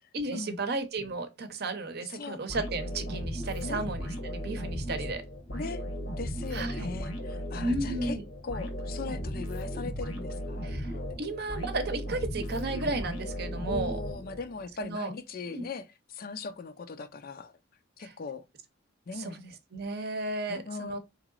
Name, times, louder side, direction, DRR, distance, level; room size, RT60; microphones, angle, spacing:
voice 1, 0.1-5.2 6.5-6.9 7.6-8.2 10.6-14.0 14.8-15.1 15.5-15.7 18.0-18.1 19.1-21.0, right 2 dB, 55° right, 0.7 m, -34 dB
voice 2, 2.0-2.4 3.6-3.8 5.5-5.8 6.2-8.2 8.4-11.2 13.7-17.5 18.0-18.4 19.1-19.4 20.5-21.0, left 4 dB, 50° left, 0.4 m, -39 dB
sound 1, 2.5-14.7, equal, 80° left, 1.1 m, -36 dB
3.8 x 3.0 x 2.3 m
head